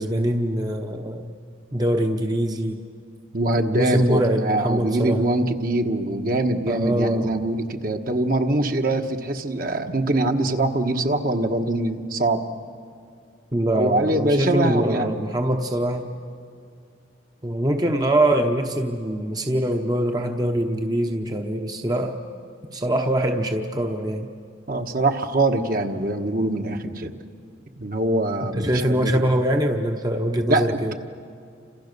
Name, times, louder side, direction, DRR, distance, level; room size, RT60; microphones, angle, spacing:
voice 1, 0.0-1.3 1.7-2.8 3.6-5.3 6.7-7.4 13.5-16.1 17.4-22.2 22.7-24.3 28.6-30.9, right 1 dB, 20° right, 4 dB, 0.9 m, -23 dB
voice 2, 3.3-12.4 13.7-15.2 24.7-27.1 27.8-29.2 30.5-30.9, right 1 dB, 45° right, 5 dB, 1.3 m, -23 dB
29.5 x 26.5 x 6.8 m, 2.3 s
head